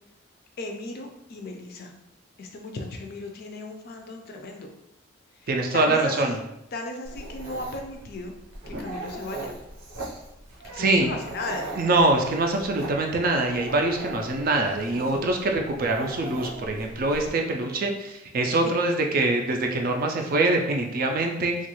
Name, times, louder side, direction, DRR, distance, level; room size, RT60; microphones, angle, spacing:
voice 1, 0.6-1.9 2.4-4.7 5.4-6.4 6.7-8.3 8.7-9.5 10.8-11.8, left 2 dB, 45° left, 3 dB, 0.4 m, -36 dB
voice 2, 5.5-6.4 10.7-11.1 11.8-21.7, right 2 dB, 45° right, 3 dB, 0.4 m, -24 dB
Dog, 7.0-17.3, right 2 dB, 80° right, 0.7 m, -39 dB
2.9 x 2.3 x 3.0 m, 0.86 s
head